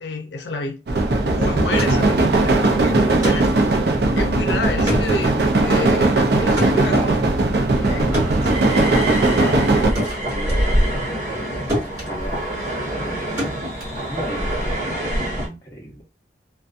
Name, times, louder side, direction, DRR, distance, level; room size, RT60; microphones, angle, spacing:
voice 1, 0.0-0.8 1.2-3.5 4.1-7.2 7.9-8.1, left 3 dB, 75° left, 0.5 m, -29 dB
sound 1, 0.9-9.9, right 2 dB, 60° right, 0.5 m, -18 dB
sound 2, 1.5-11.4 11.7-14.7, equal, 25° right, 1.5 m, -31 dB
voice 2, 1.9-2.2 2.9-3.3 6.3-9.7 10.2-12.4 13.0-16.0, right 1 dB, 20° left, 0.8 m, -35 dB
sound 3, 2.3-15.5, equal, 45° right, 1.0 m, -28 dB
2.5 x 2.2 x 2.4 m
head